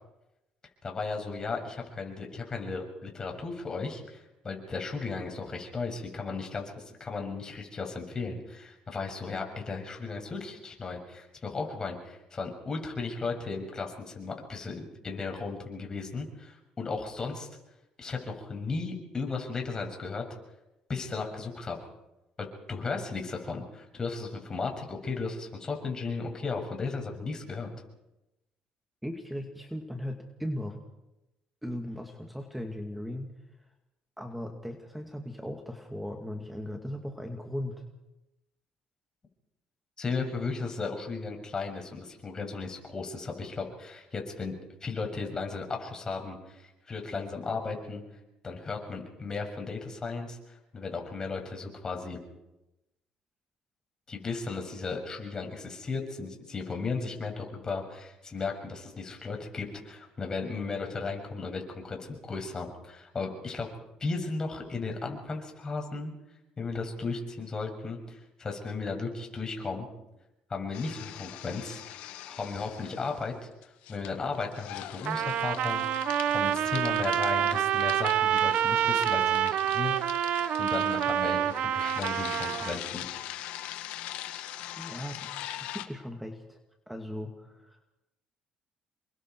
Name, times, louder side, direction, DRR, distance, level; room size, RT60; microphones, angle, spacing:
voice 1, 0.8-17.5 18.0-20.2 20.9-21.8 22.4-27.7 40.0-44.5 44.8-48.0 48.4-52.2 54.1-63.7 64.0-66.1 66.6-69.9 70.5-71.8 72.3-73.3 73.9-75.8 76.3-83.1, left 4 dB, 30° left, 3 dB, 6.8 m, -35 dB
voice 2, 29.0-30.8 31.6-33.3 33.6-33.7 34.2-37.9 84.8-86.6 86.9-87.8, equal, 5° right, 4 dB, 2.4 m, -38 dB
sound 1, 70.7-73.3 73.6-85.9, left 13 dB, 85° left, 1.7 m, -42 dB
Trumpet, 75.0-82.8, right 10 dB, 65° right, 0.8 m, -27 dB
29.0 x 23.0 x 4.7 m, 0.94 s
cardioid pair, 90°, 2 cm